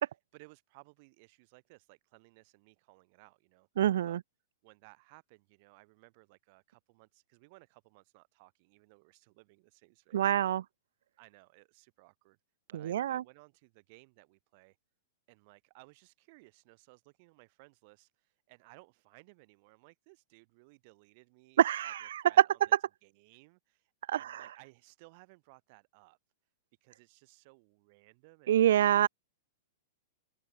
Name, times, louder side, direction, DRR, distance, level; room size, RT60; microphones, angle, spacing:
voice 1, 0.0-4.2 4.6-10.6 11.2-12.4 12.7-14.8 15.3-22.8 23.0-26.2 26.8-29.1, right 28 dB, 30° right, 6.8 m, -60 dB
voice 2, 3.8-4.2 10.1-10.6 12.7-13.2 21.6-22.2 24.1-24.4 28.5-29.1, right 11 dB, 60° right, 0.6 m, -26 dB
supercardioid pair, 180°, 0 cm